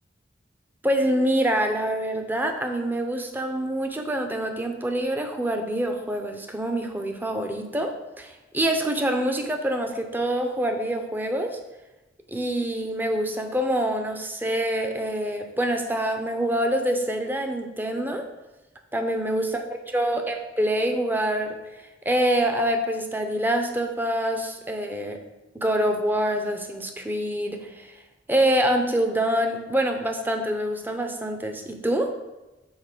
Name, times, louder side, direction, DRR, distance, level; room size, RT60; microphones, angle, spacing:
voice 1, 0.8-11.6 12.3-18.3 18.9-25.2 25.5-27.9 28.3-32.1, right 1 dB, 10° right, 5 dB, 0.7 m, -26 dB
5.6 x 4.2 x 6.1 m, 1.1 s
head